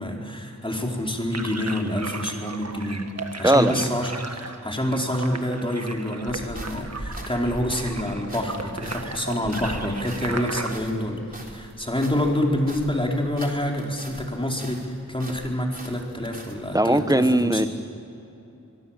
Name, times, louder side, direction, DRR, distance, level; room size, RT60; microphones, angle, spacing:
voice 1, 0.0-3.1 3.4-17.6, left 1 dB, 15° left, 0 dB, 4.4 m, -27 dB
sound 1, 1.3-10.7, right 3 dB, 50° right, 1.7 m, -36 dB
voice 2, 3.4-3.8 16.7-17.7, right 1 dB, 10° right, 11 dB, 1.2 m, -19 dB
sound 2, 6.3-14.3 14.6-16.5, right 1 dB, 25° right, 3.6 m, -41 dB
24.5 x 23.5 x 7.6 m, 2.9 s
wide cardioid pair, 55°, 33 cm